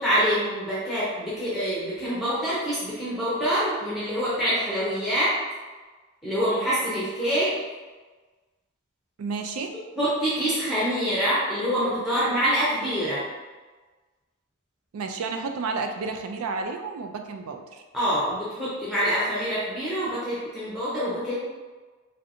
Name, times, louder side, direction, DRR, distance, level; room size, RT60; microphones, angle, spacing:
voice 1, 0.0-5.3 6.2-7.5 10.0-13.2 17.9-21.3, equal, ahead, -10 dB, 0.6 m, -25 dB
voice 2, 9.2-9.8 14.9-17.8, right 4 dB, 80° right, 5 dB, 0.4 m, -31 dB
3.2 x 2.7 x 2.6 m, 1.3 s
head